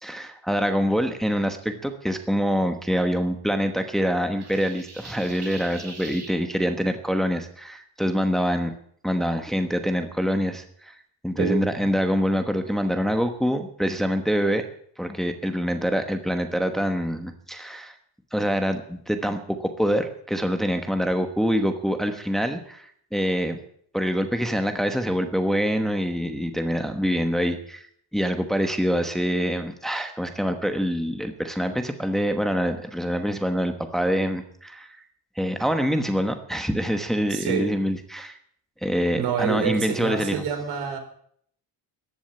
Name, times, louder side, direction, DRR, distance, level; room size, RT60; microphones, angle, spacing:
voice 1, 0.0-8.7 9.0-10.9 11.2-14.6 15.0-17.9 18.3-23.6 23.9-27.9 28.1-34.9 35.4-38.4 38.8-40.4, equal, ahead, 6 dB, 1.1 m, -25 dB
sound 1, 4.4-6.3, right 4 dB, 45° right, 5.2 m, -42 dB
voice 2, 11.4-11.9 37.3-37.7 39.1-41.0, right 7 dB, 80° right, 5 dB, 4.7 m, -27 dB
14.5 x 11.0 x 8.9 m, 0.64 s
cardioid pair, 170°, 38 cm